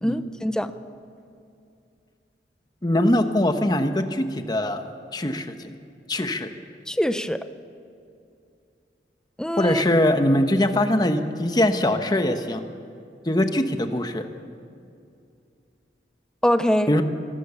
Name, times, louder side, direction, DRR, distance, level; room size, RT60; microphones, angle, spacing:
voice 1, 0.0-0.7 6.9-7.5 9.4-9.8 16.4-16.9, equal, 5° left, 11 dB, 0.6 m, -23 dB
voice 2, 2.8-5.7 6.1-6.5 9.6-12.6 13.2-14.3 16.9-17.0, left 1 dB, 25° left, 7 dB, 1.1 m, -22 dB
24.0 x 16.5 x 7.0 m, 2.5 s
head